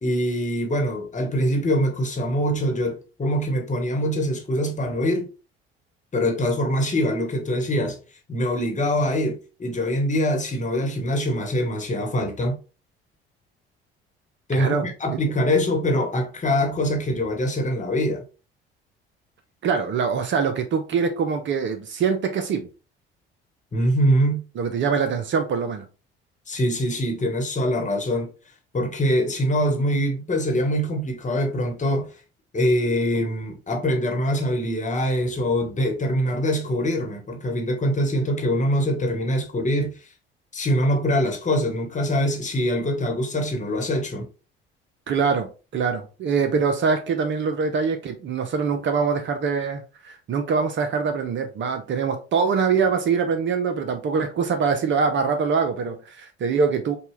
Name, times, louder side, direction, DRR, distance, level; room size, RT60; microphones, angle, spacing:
voice 1, 0.0-5.3 6.1-8.0 8.3-12.6 14.5-18.2 23.7-24.4 26.5-28.3 28.7-32.1 32.5-39.9 40.5-44.3, equal, 25° left, 1.3 m, -23 dB
voice 2, 19.6-22.7 24.6-25.9 45.1-45.5 45.7-57.0, right 5 dB, 40° right, 0.7 m, -23 dB
5.5 x 2.3 x 3.1 m
figure-of-eight pair, 50°, 29 cm